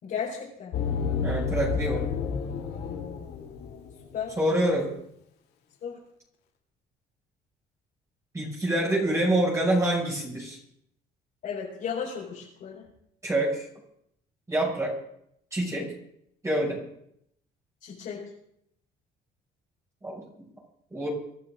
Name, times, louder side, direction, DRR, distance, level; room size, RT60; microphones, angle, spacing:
voice 1, 0.0-0.7 4.1-4.4 5.8-6.0 11.4-12.8 17.8-18.2, left 7 dB, 60° left, -6 dB, 4.7 m, -34 dB
sound 1, 0.7-4.1, left 5 dB, 75° left, 2.6 m, -30 dB
voice 2, 1.2-2.0 4.4-4.9 8.3-10.6 13.2-13.6 14.5-14.9 15.5-15.9 16.4-16.8 20.0-20.2 20.9-21.1, right 1 dB, 15° right, -3 dB, 5.9 m, -26 dB
24.5 x 11.5 x 3.8 m, 0.73 s
cardioid pair, 110°, 17 cm